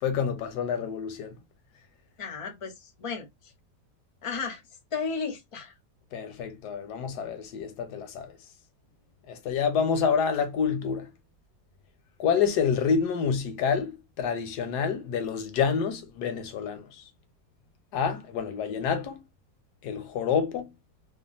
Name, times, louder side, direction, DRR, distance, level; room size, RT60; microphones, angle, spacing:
voice 1, 0.0-1.4 6.1-8.4 9.3-11.1 12.2-17.1 17.9-19.2 19.8-20.7, left 6 dB, 80° left, 1.3 m, -28 dB
voice 2, 2.2-3.2 4.2-4.6 4.9-5.7 18.6-18.7, left 5 dB, 35° left, 0.5 m, -33 dB
2.9 x 2.4 x 2.4 m
omnidirectional pair, 1.7 m